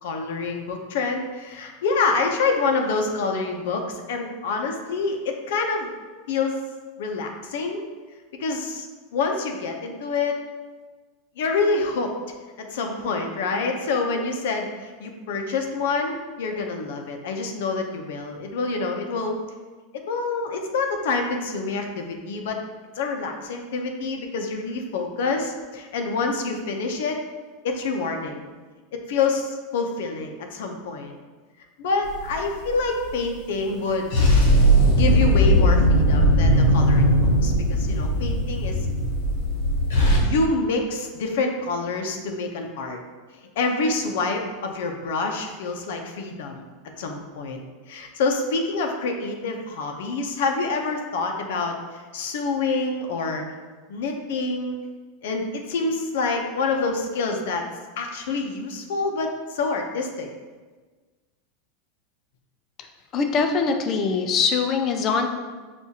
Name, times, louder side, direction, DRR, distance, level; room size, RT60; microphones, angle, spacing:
voice 1, 0.0-5.9 6.3-6.6 7.0-7.8 8.4-8.9 9.1-10.4 11.4-12.1 12.6-19.4 20.1-22.6 22.9-27.2 27.6-28.5 28.9-31.2 31.8-34.1 34.9-38.9 40.2-43.0 43.6-46.6 47.0-47.6 47.9-53.4 53.9-54.8 55.2-57.7 58.0-60.3, left 3 dB, 70° left, 3 dB, 0.6 m, -27 dB
sound 1, 32.1-32.7 34.1-40.2, equal, 90° left, 0.9 m, -18 dB
voice 2, 63.1-65.3, left 5 dB, 25° left, 5 dB, 0.3 m, -22 dB
6.0 x 2.4 x 2.7 m, 1.4 s
supercardioid pair, 170°, 0 cm